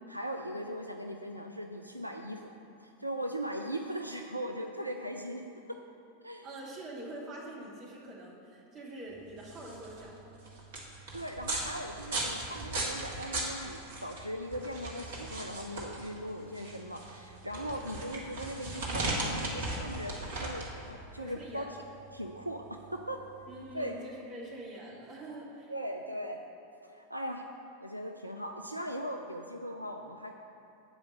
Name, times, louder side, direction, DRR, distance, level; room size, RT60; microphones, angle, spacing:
voice 1, 0.1-2.5 2.8-5.4 6.2-6.4 11.1-21.7 22.1-23.3 23.7-24.0 25.7-26.5 26.8-27.5 27.8-30.3, equal, 85° right, 3 dB, 0.4 m, -39 dB
voice 2, 6.4-10.4 21.2-21.7 23.5-25.7 26.0-26.1, right 1 dB, 30° right, -5 dB, 2.3 m, -45 dB
sound 1, 9.3-23.8, right 2 dB, 55° right, 1.7 m, -38 dB
7.8 x 5.0 x 7.3 m, 2.7 s
figure-of-eight pair, 90°, 0 cm